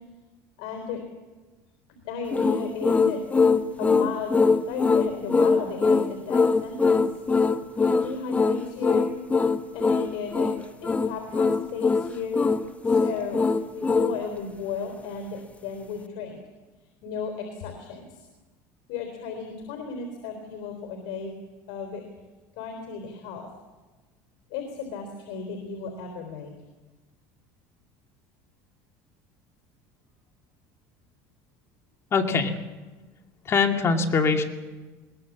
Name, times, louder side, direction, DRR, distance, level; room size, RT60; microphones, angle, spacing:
voice 1, 0.6-1.0 2.0-3.2 3.8-7.1 7.9-9.1 9.7-10.5 10.8-12.4 12.9-13.4 13.7-16.4 17.0-18.3 18.9-21.3 21.7-22.0 22.6-23.5 24.5-26.5, left 5 dB, 75° left, 4 dB, 3.8 m, -34 dB
sound 1, 2.3-14.2, left 4 dB, 15° left, 0.9 m, -22 dB
voice 2, 32.1-32.5 33.5-34.4, left 4 dB, 30° left, 4 dB, 2.5 m, -22 dB
21.5 x 20.0 x 7.3 m, 1.3 s
cardioid pair, 125°, 8 cm